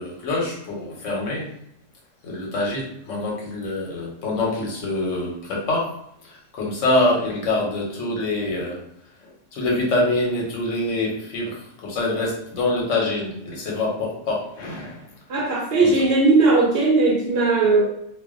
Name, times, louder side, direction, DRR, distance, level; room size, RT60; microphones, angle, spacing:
voice 1, 0.0-1.5 2.2-5.9 6.2-8.8 9.2-15.1 15.8-16.0, left 2 dB, 85° left, -2 dB, 1.1 m, -25 dB
voice 2, 15.3-17.9, right 3 dB, 65° right, -1 dB, 0.7 m, -18 dB
2.5 x 2.2 x 2.4 m, 0.75 s
omnidirectional pair, 1.2 m